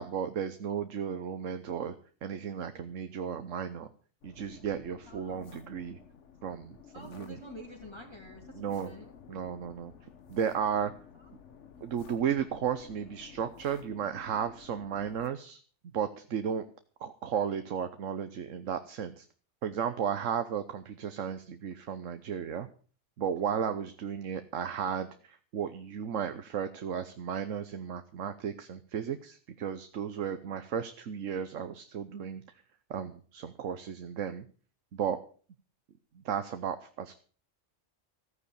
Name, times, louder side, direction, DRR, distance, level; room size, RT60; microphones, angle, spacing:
voice 1, 0.0-2.0 2.2-3.9 4.2-6.0 6.4-7.4 8.5-8.9 9.3-9.9 10.3-10.9 11.8-15.6 15.9-16.7 17.0-19.3 19.6-22.7 23.2-32.4 32.9-34.4 34.9-35.2 36.1-37.1, right 8 dB, 85° right, 10 dB, 1.3 m, -34 dB
sound 1, 4.2-15.3, left 7 dB, 70° left, 1.4 m, -53 dB
voice 2, 5.1-5.5 6.9-9.1, left 1 dB, 20° left, -1 dB, 2.9 m, -48 dB
14.5 x 9.7 x 6.9 m, 0.41 s
omnidirectional pair, 1.3 m